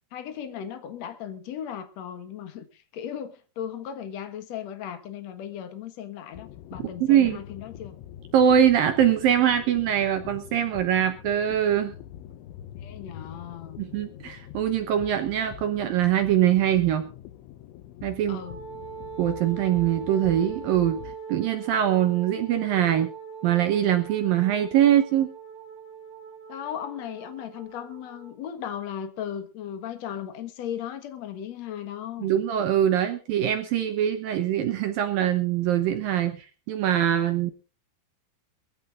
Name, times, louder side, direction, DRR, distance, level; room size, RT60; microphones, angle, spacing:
voice 1, 0.1-8.0 12.8-13.8 18.3-18.6 26.5-32.3, left 9 dB, 65° left, 1.7 m, -36 dB
sound 1, 6.3-21.2, left 11 dB, 85° left, 3.4 m, -44 dB
voice 2, 7.0-7.4 8.3-11.9 13.8-17.1 18.0-18.4 19.2-21.0 21.3-23.1 23.4-25.3 32.2-37.5, right 10 dB, 75° right, 2.2 m, -23 dB
Wind instrument woodwind instrument, 18.4-28.4, right 6 dB, 35° right, 3.6 m, -41 dB
23.0 x 15.0 x 2.5 m
omnidirectional pair, 5.2 m